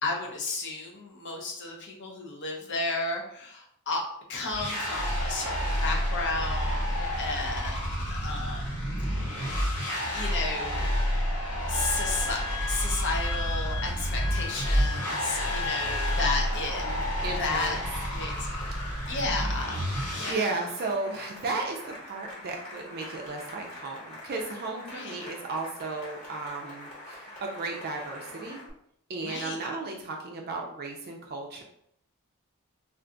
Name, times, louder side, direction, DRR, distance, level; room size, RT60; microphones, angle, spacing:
voice 1, 0.0-4.0 4.3-9.3 10.1-10.9 11.7-12.4 12.7-16.8 17.4-18.5 18.9-19.9 20.1-20.5 24.9-25.2 29.2-29.6, left 3 dB, 55° left, 0 dB, 0.7 m, -33 dB
sound 1, 4.5-20.3, equal, 70° left, 1.4 m, -29 dB
Wind instrument woodwind instrument, 11.7-16.5, left 4 dB, 15° left, 0.6 m, -38 dB
Cheering / Applause, 13.9-28.7, left 1 dB, 35° left, 1.0 m, -44 dB
voice 2, 16.8-17.8 18.7-18.8 20.3-28.6 29.1-31.6, right 3 dB, 45° right, 1 dB, 0.4 m, -34 dB
2.5 x 2.3 x 3.7 m, 0.71 s
head